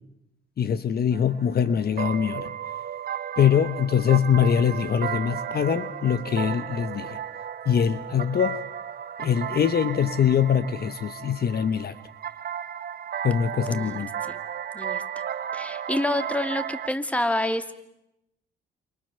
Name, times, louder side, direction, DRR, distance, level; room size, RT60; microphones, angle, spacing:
voice 1, 0.6-2.5 3.4-7.2 7.7-8.6 9.2-11.9 13.2-14.1, left 8 dB, 50° left, 1.3 m, -23 dB
sound 1, 1.1-16.9, right 9 dB, 50° right, 1.2 m, -34 dB
voice 2, 13.7-14.4 14.7-15.0 15.5-17.7, left 1 dB, 5° left, 2.5 m, -28 dB
28.5 x 27.5 x 7.0 m
cardioid pair, 90°, 20 cm